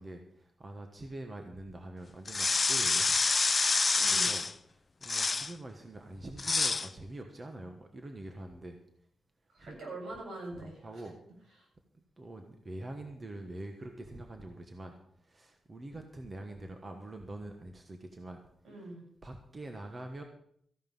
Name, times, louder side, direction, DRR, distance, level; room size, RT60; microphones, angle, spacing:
voice 1, 0.0-3.2 3.7-4.4 5.0-8.8 9.6-9.8 10.6-11.2 12.2-14.9 15.3-18.4 19.2-20.2, right 2 dB, 25° right, 4 dB, 1.4 m, -45 dB
sound 1, 2.3-4.5 5.0-5.5 6.4-6.9, left 4 dB, 30° left, 0.4 m, -27 dB
voice 2, 3.9-4.3 9.5-11.1 18.6-19.0, right 2 dB, 80° right, 0 dB, 7.4 m, -43 dB
14.5 x 11.5 x 5.6 m, 0.65 s
wide cardioid pair, 155°, 0 cm